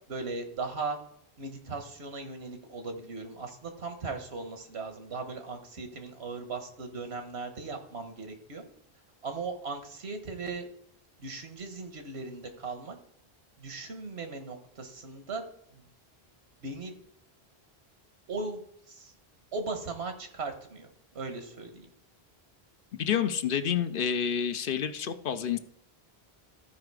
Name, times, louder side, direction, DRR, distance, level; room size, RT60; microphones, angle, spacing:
voice 1, 0.1-1.0 1.4-8.6 9.2-10.6 11.2-13.0 13.6-15.5 15.7-15.8 16.6-17.0 18.3-18.6 18.9-19.1 19.5-20.9 21.1-21.9, right 3 dB, 85° right, 7 dB, 1.5 m, -38 dB
voice 2, 23.0-25.6, left 8 dB, 60° left, 10 dB, 0.7 m, -29 dB
14.0 x 4.8 x 4.7 m, 0.69 s
omnidirectional pair, 1.1 m